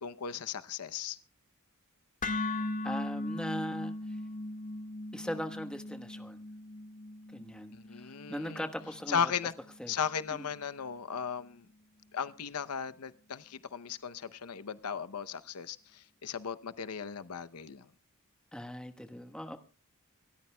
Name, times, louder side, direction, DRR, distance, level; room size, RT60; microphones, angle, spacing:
voice 1, 0.0-1.2 7.7-8.7 9.1-9.5 9.9-11.6 12.1-17.8, left 7 dB, 90° left, 0.7 m, -36 dB
sound 1, 2.2-10.3, left 2 dB, 40° left, 1.6 m, -39 dB
voice 2, 2.8-3.9 5.1-6.4 7.3-7.7 8.3-9.3 9.8-9.9 10.4-10.5 18.5-19.6, equal, 5° left, 1.2 m, -39 dB
27.5 x 13.5 x 2.2 m
head